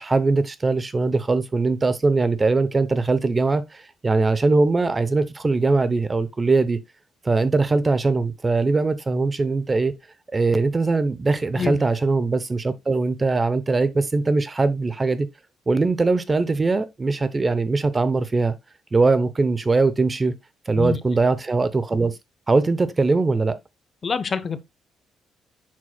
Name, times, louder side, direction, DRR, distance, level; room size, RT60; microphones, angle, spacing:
voice 1, 0.0-6.8 7.2-9.9 10.3-15.3 15.7-18.5 18.9-20.4 20.7-22.2 22.5-23.6, right 3 dB, 25° right, 0.7 m, -21 dB
voice 2, 24.0-24.6, left 5 dB, 40° left, 0.7 m, -26 dB
7.4 x 6.1 x 2.2 m
cardioid pair, 90°, 0 cm